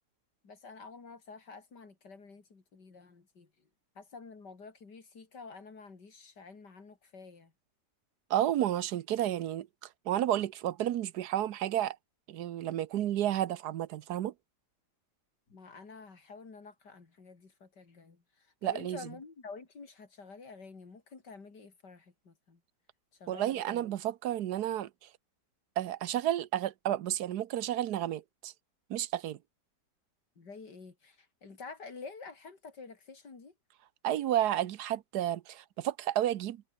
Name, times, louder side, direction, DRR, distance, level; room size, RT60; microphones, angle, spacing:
voice 1, 0.4-3.7 4.0-7.5 15.5-22.6 23.1-23.9 30.4-33.5, left 4 dB, 85° left, 3.9 m, -49 dB
voice 2, 8.3-12.0 12.3-14.3 18.6-19.0 23.3-24.9 25.8-28.5 28.9-29.4 34.0-36.7, right 12 dB, 75° right, 1.3 m, -31 dB
omnidirectional pair, 1.8 m